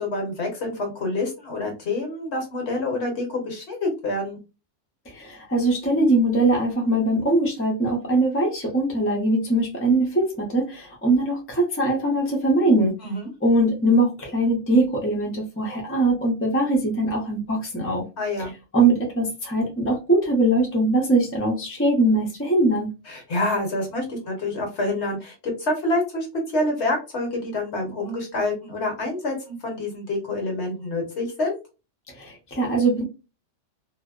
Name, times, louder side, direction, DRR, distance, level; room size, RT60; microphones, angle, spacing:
voice 1, 0.0-4.4 13.0-13.3 18.2-18.5 23.1-31.5, left 2 dB, 65° left, 2 dB, 1.2 m, -27 dB
voice 2, 5.1-12.9 13.4-18.1 18.7-22.9 32.1-33.0, right 2 dB, 15° left, -1 dB, 0.6 m, -21 dB
2.6 x 2.0 x 2.3 m, 0.29 s
omnidirectional pair, 1.3 m